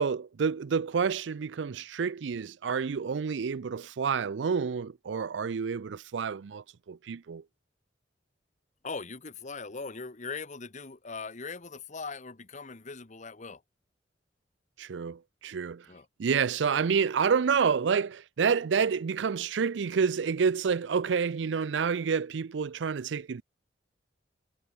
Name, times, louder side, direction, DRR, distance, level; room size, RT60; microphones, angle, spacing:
voice 1, 0.0-7.4 14.8-15.8 16.2-23.4, right 6 dB, 85° right, 0.5 m, -28 dB
voice 2, 8.8-13.6 15.9-16.1, left 4 dB, 40° left, 1.3 m, -40 dB
head